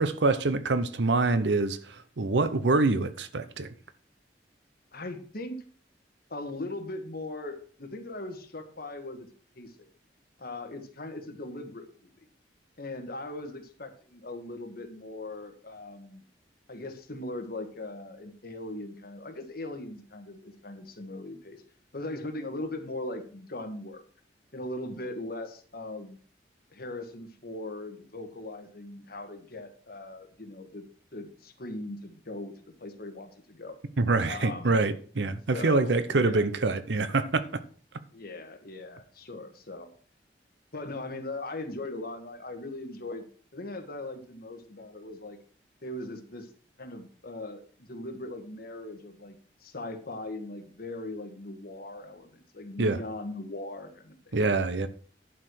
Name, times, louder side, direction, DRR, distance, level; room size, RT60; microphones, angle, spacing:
voice 1, 0.0-3.7 34.0-37.4 52.8-53.0 54.3-54.9, right 3 dB, 75° right, 0.7 m, -25 dB
voice 2, 4.9-5.6 6.3-9.3 9.5-9.7 10.4-12.2 12.8-16.2 16.7-21.6 21.9-24.0 24.5-26.2 26.7-30.8 31.1-33.8 34.3-34.8 35.5-36.5 38.1-39.9 40.7-43.3 43.5-45.4 45.8-46.5 46.8-54.4, left 2 dB, 60° left, 1.6 m, -39 dB
11.0 x 4.8 x 6.3 m
head